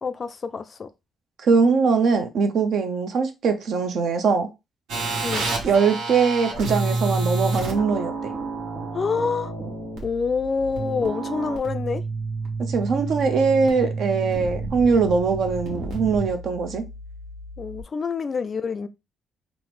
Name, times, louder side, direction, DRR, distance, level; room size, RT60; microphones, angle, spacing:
voice 1, 0.0-0.9 5.2-5.5 8.9-9.5 10.0-12.0 17.6-18.9, left 5 dB, 40° left, 0.3 m, -27 dB
voice 2, 1.4-4.5 5.6-8.3 12.7-16.8, right 5 dB, 65° right, 0.6 m, -21 dB
sound 1, 4.9-17.8, right 3 dB, 85° right, 1.0 m, -30 dB
3.7 x 2.0 x 3.0 m
cardioid pair, 90°, 0 cm